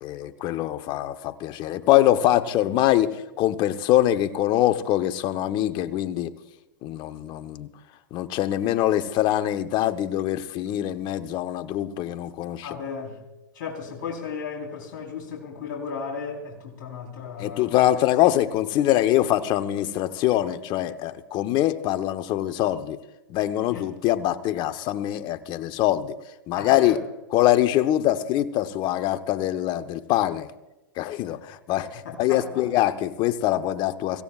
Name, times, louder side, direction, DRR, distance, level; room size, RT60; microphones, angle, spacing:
voice 1, 0.0-6.3 6.8-7.7 8.1-12.7 17.4-23.0 23.3-26.1 26.5-27.0 27.3-30.5 31.0-34.2, left 13 dB, 40° left, 11 dB, 1.0 m, -23 dB
voice 2, 12.6-13.2 13.5-17.9 23.7-23.8 26.6-27.0 32.0-32.7, left 5 dB, 60° left, 0 dB, 4.1 m, -35 dB
24.5 x 16.5 x 2.5 m, 1.0 s
hypercardioid pair, 105°, 11 cm